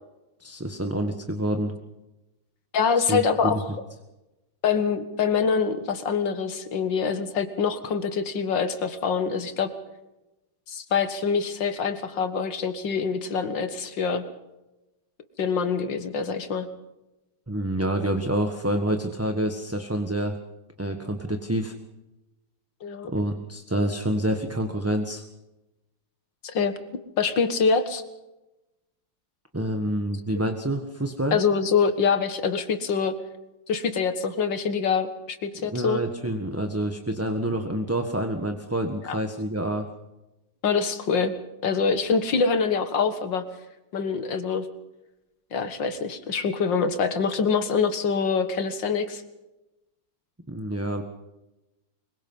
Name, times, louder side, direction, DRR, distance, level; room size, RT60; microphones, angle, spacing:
voice 1, 0.4-1.7 3.0-3.5 17.5-20.4 20.8-21.7 23.1-25.2 29.5-31.4 35.5-39.9 50.5-51.0, right 1 dB, 10° right, 5 dB, 1.2 m, -27 dB
voice 2, 2.7-3.6 4.6-9.7 10.7-14.2 15.4-16.7 22.8-23.1 26.4-26.8 27.2-28.0 31.3-33.2 33.7-36.0 39.1-39.2 40.6-41.3 41.6-43.4 43.9-44.7 45.5-49.2, left 5 dB, 75° left, 9 dB, 2.3 m, -25 dB
24.0 x 22.5 x 5.6 m, 0.99 s
omnidirectional pair, 2.0 m